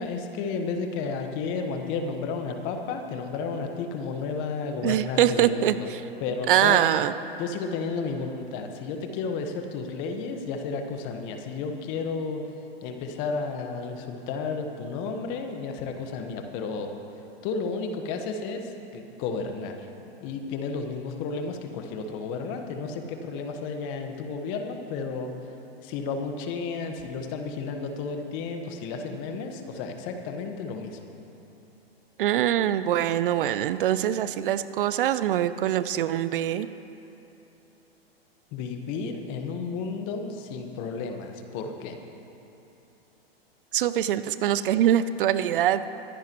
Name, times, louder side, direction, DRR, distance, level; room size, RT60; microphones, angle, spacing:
voice 1, 0.0-5.9 6.2-6.8 7.4-12.4 12.8-16.9 17.4-19.8 20.2-25.3 25.8-31.0 38.5-42.0, left 4 dB, 40° left, 4 dB, 1.4 m, -32 dB
voice 2, 4.8-5.8 6.5-7.1 32.2-36.7 43.7-45.9, right 11 dB, 60° right, 14 dB, 0.6 m, -23 dB
24.0 x 10.5 x 3.1 m, 3.0 s
hypercardioid pair, 115°, 31 cm